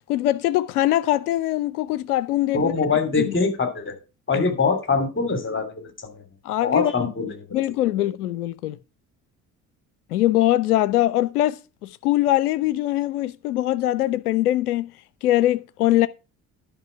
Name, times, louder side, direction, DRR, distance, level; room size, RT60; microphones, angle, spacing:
voice 1, 0.1-2.7 3.2-3.3 4.3-4.5 6.4-6.9 7.5-8.8 10.1-14.9 15.2-16.1, left 14 dB, 75° left, 0.6 m, -22 dB
voice 2, 2.5-3.9 4.3-6.2 6.6-7.3 8.0-8.1, left 4 dB, 25° left, 3.1 m, -23 dB
11.0 x 5.1 x 5.8 m
figure-of-eight pair, 50°, 46 cm